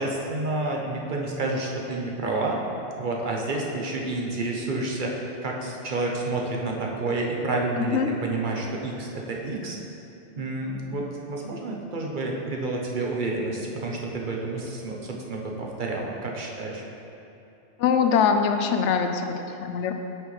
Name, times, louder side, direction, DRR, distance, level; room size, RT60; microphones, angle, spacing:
voice 1, 0.0-2.6 3.0-9.8 10.4-16.8, right 2 dB, 50° right, -1 dB, 0.9 m, -29 dB
voice 2, 7.8-8.1 17.8-19.9, left 6 dB, 85° left, 6 dB, 0.9 m, -23 dB
8.8 x 6.3 x 3.2 m, 2.9 s
omnidirectional pair, 1.2 m